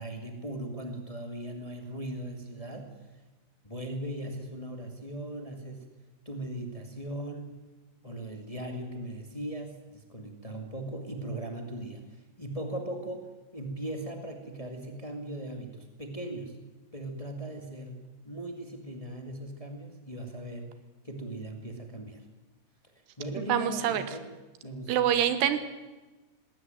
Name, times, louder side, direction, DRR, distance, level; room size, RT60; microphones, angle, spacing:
voice 1, 0.0-2.9 3.6-5.8 6.2-7.6 8.0-12.0 12.4-16.6 16.9-20.7 21.0-22.2 23.2-24.3 24.6-25.1, right 1 dB, 15° left, 4 dB, 1.2 m, -38 dB
voice 2, 23.5-24.0 24.9-25.6, right 10 dB, 85° right, 11 dB, 3.5 m, -25 dB
19.5 x 18.0 x 9.2 m, 1.2 s
omnidirectional pair, 4.6 m